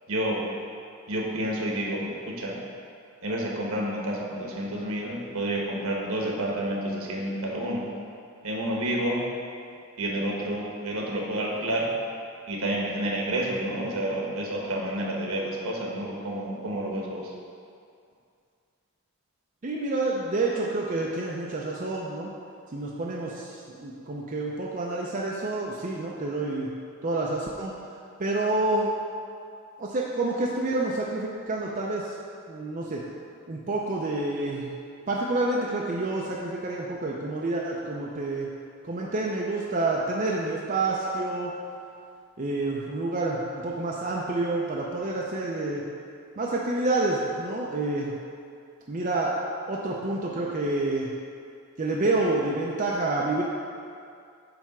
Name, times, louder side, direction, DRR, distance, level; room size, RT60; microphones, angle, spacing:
voice 1, 0.1-0.4 1.1-2.6 3.2-7.8 8.4-9.2 10.0-11.9 12.5-17.3, right 1 dB, 70° right, -2 dB, 1.3 m, -29 dB
voice 2, 19.6-22.3 22.7-26.7 27.0-27.7 28.2-28.9 29.8-32.1 32.5-33.0 33.5-34.8 35.1-38.5 38.8-41.5 42.4-45.8 46.4-48.1 48.9-49.3 49.7-51.1 51.8-53.4, right 2 dB, 35° right, -3 dB, 0.5 m, -28 dB
8.7 x 3.5 x 5.9 m, 2.4 s
head